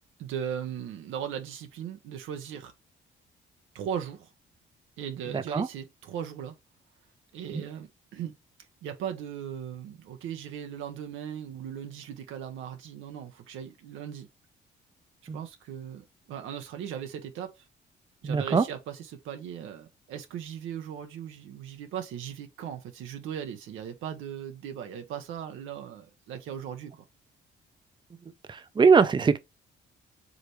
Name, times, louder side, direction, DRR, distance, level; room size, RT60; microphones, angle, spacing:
voice 1, 0.2-2.7 3.7-4.3 5.0-6.5 7.3-8.3 8.8-14.3 15.3-17.7 18.2-27.0, right 9 dB, 90° right, 0.9 m, -38 dB
voice 2, 5.3-5.7 7.5-7.6 15.3-15.4 18.2-18.6 28.5-29.4, right 5 dB, 25° right, 0.6 m, -22 dB
4.9 x 3.2 x 3.2 m
cardioid pair, 90°, 20 cm